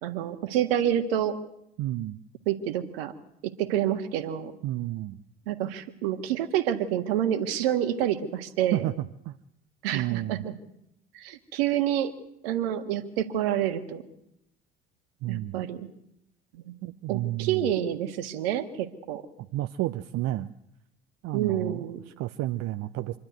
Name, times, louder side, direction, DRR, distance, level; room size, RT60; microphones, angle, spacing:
voice 1, 0.0-1.4 2.5-3.1 3.4-4.5 5.5-8.8 9.8-10.5 11.1-12.1 12.4-14.0 15.3-15.9 16.5-16.7 17.1-19.2 21.3-22.0, right 10 dB, 75° right, 10 dB, 1.6 m, -28 dB
voice 2, 1.8-2.2 4.6-5.2 8.7-9.4 9.9-10.4 15.2-15.6 16.8-17.7 19.4-20.5 21.2-23.2, right 15 dB, 55° right, 11 dB, 0.7 m, -31 dB
26.0 x 11.5 x 9.3 m, 0.81 s
hypercardioid pair, 60°, 30 cm